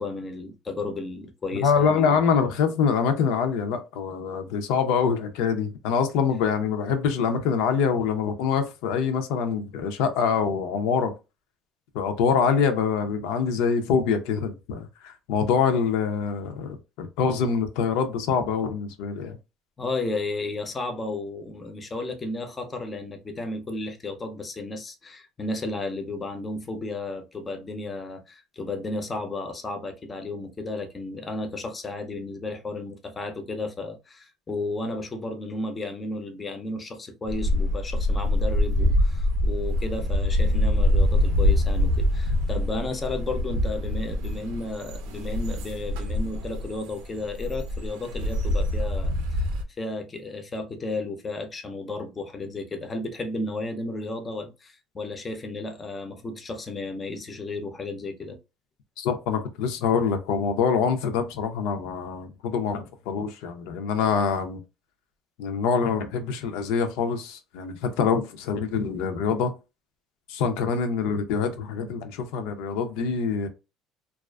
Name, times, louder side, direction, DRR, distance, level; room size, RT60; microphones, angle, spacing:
voice 1, 0.0-2.2 19.8-49.1 49.8-58.4, left 2 dB, 20° left, 0.4 m, -33 dB
voice 2, 1.5-11.1 11.9-19.4 59.0-64.6 65.4-69.5 70.3-73.5, left 6 dB, 90° left, 0.5 m, -25 dB
sound 1, 37.3-49.6, left 1 dB, 85° right, 0.5 m, -24 dB
2.3 x 2.3 x 2.2 m
cardioid pair, 155°, 0 cm